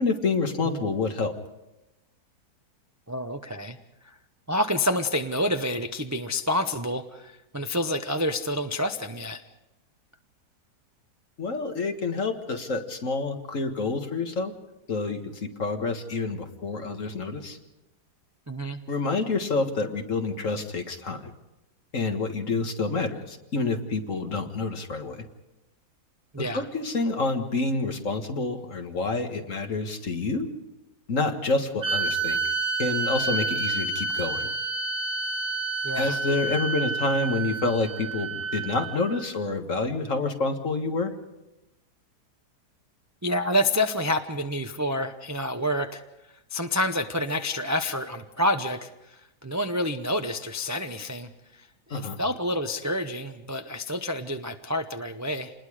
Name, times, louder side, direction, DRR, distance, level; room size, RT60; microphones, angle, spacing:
voice 1, 0.0-1.3 11.4-14.5 14.9-17.6 18.9-21.3 21.9-25.2 26.5-30.5 31.1-32.4 32.8-34.5 36.0-41.1 51.9-52.2, left 3 dB, 55° left, 6 dB, 1.9 m, -28 dB
voice 2, 3.1-3.8 4.0-4.1 4.5-9.4 18.5-18.8 26.3-26.7 35.8-36.2 43.2-46.0 46.5-55.5, left 1 dB, 20° right, 7 dB, 0.5 m, -28 dB
sound 1, 31.8-39.3, right 4 dB, 40° right, 1.7 m, -29 dB
28.0 x 20.5 x 5.0 m, 0.96 s
omnidirectional pair, 1.7 m